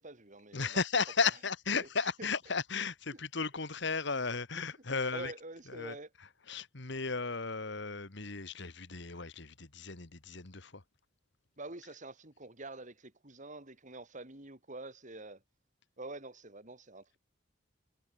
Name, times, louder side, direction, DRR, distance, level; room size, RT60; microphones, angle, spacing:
voice 1, 0.0-0.8 1.8-1.9 2.2-2.3 4.5-4.6 5.1-6.1 11.6-15.4 16.0-17.2, right 2 dB, 40° right, 4.7 m, -46 dB
voice 2, 0.5-5.3 5.7-6.0 6.5-10.8, left 5 dB, 65° left, 2.1 m, -35 dB
head